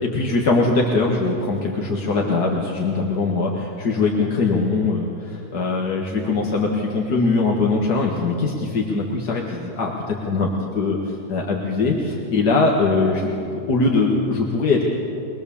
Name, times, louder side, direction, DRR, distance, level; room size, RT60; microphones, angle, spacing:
voice 1, 0.0-13.3 13.5-14.8, left 3 dB, 85° left, -1 dB, 2.3 m, -21 dB
23.5 x 20.5 x 7.1 m, 2.7 s
omnidirectional pair, 1.7 m